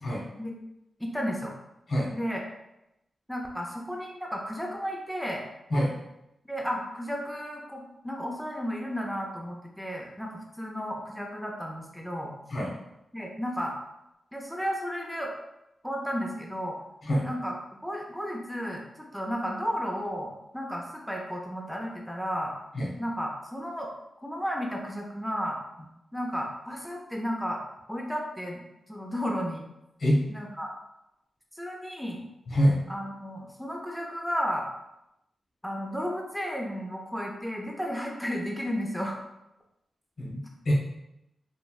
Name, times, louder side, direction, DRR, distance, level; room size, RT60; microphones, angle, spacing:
voice 1, 1.0-1.5 2.1-2.4 3.3-5.4 6.5-12.3 13.1-13.7 14.3-15.3 15.8-16.8 17.2-17.5 17.8-22.5 23.0-23.9 24.2-25.6 26.1-27.6 27.9-28.6 28.9-29.6 30.3-30.7 31.6-32.2 32.9-34.7 35.6-39.2, equal, ahead, -1 dB, 0.4 m, -33 dB
voice 2, 32.5-32.8 40.2-40.7, equal, 60° left, -4 dB, 0.9 m, -25 dB
3.1 x 2.5 x 2.2 m, 0.88 s
wide cardioid pair, 110°, 0 cm